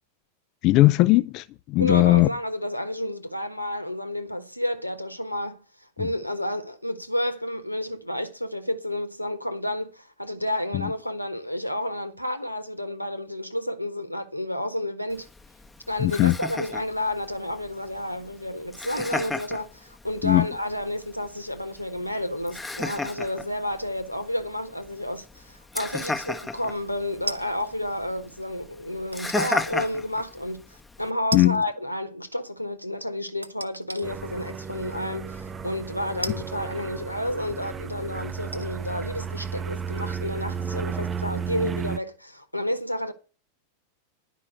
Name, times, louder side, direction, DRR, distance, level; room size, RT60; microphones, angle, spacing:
voice 1, 0.6-2.3 6.0-6.1 16.0-16.3 20.2-20.5 31.3-31.6, left 18 dB, 40° left, 0.4 m, -19 dB
voice 2, 1.8-5.6 6.0-15.3 15.9-43.1, left 1 dB, 90° left, 1.3 m, -31 dB
Laughter, 15.1-31.1, left 2 dB, 10° left, 0.9 m, -36 dB
sound 1, 27.3-27.8 29.1-29.6 30.2-30.3 31.3-31.8 32.0-32.1 33.4-34.1 34.9-35.0 36.2-37.3 38.0-38.1 38.4-40.9 41.2-41.3, right 2 dB, 85° right, 0.7 m, -37 dB
sound 2, 34.0-42.0, right 6 dB, 20° right, 0.5 m, -33 dB
10.5 x 5.6 x 7.6 m
figure-of-eight pair, 90°, 0 cm